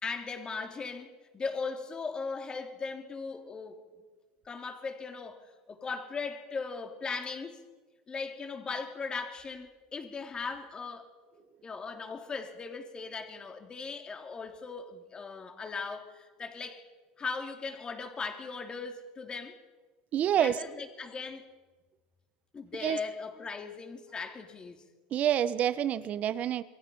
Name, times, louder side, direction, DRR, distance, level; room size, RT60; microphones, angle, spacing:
voice 1, 0.0-3.8 4.4-7.6 8.1-11.1 11.6-16.8 17.2-19.6 20.4-21.4 22.5-24.8, left 4 dB, 25° left, 4 dB, 3.4 m, -38 dB
voice 2, 20.1-20.5 22.8-23.0 25.1-26.6, right 10 dB, 40° right, 15 dB, 1.2 m, -27 dB
28.0 x 22.0 x 5.7 m, 1.3 s
supercardioid pair, 105°, 4 cm